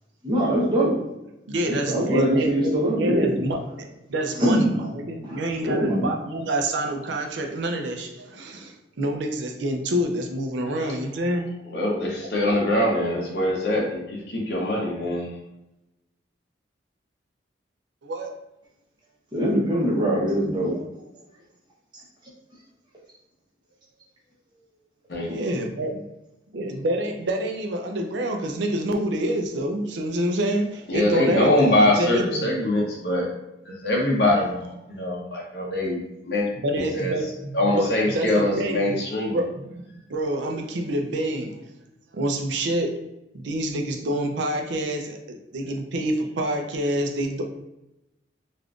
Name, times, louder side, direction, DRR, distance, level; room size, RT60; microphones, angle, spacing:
voice 1, 0.2-0.9 1.7-3.3 4.4-4.7 5.2-6.1 19.3-20.8, right 1 dB, 25° right, -5 dB, 0.8 m, -22 dB
voice 2, 1.5-11.5 12.2-12.3 18.0-18.3 25.2-26.0 26.5-32.7 35.8-35.9 36.6-39.0 39.3-41.7 42.1-43.0 43.3-47.5, right 1 dB, 75° right, 4 dB, 0.4 m, -27 dB
voice 3, 11.7-14.0 14.3-15.3 25.1-25.3 30.9-33.3 33.7-36.0 36.3-36.5 36.8-37.1 37.5-39.4, left 1 dB, 60° left, -3 dB, 0.7 m, -23 dB
3.5 x 2.5 x 2.3 m, 0.91 s
head